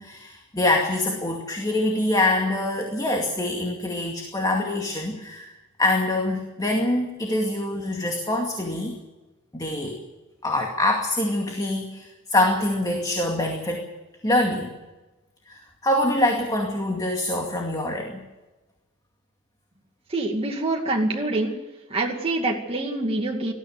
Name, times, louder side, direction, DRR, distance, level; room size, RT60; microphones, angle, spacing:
voice 1, 0.0-5.5 5.8-9.0 9.5-10.0 10.4-13.8 14.2-14.7 15.5-18.2, left 1 dB, 20° left, 1 dB, 2.3 m, -25 dB
voice 2, 20.1-21.6 21.9-23.5, right 2 dB, 25° right, 0 dB, 2.3 m, -25 dB
19.5 x 13.5 x 9.5 m, 1.1 s
head